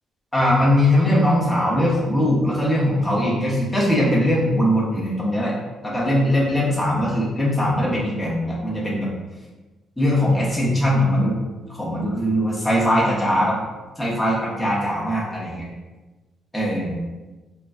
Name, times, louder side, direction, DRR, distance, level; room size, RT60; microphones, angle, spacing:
voice 1, 0.3-5.5 5.8-9.1 10.0-11.4 11.7-13.6 14.0-15.6 16.5-17.0, left 1 dB, 5° left, -6 dB, 0.7 m, -20 dB
3.3 x 2.2 x 2.4 m, 1.2 s
cardioid pair, 90°, 0 cm